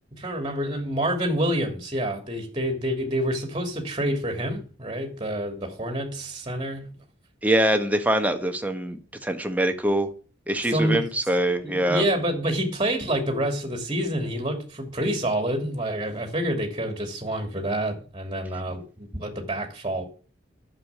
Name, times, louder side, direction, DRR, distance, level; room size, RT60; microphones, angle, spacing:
voice 1, 0.1-6.9 10.6-11.1 11.6-20.0, right 1 dB, 25° right, 2.8 m, -28 dB
voice 2, 7.4-10.1 10.5-12.0, right 1 dB, 10° right, 1.6 m, -24 dB
11.0 x 7.1 x 8.0 m
head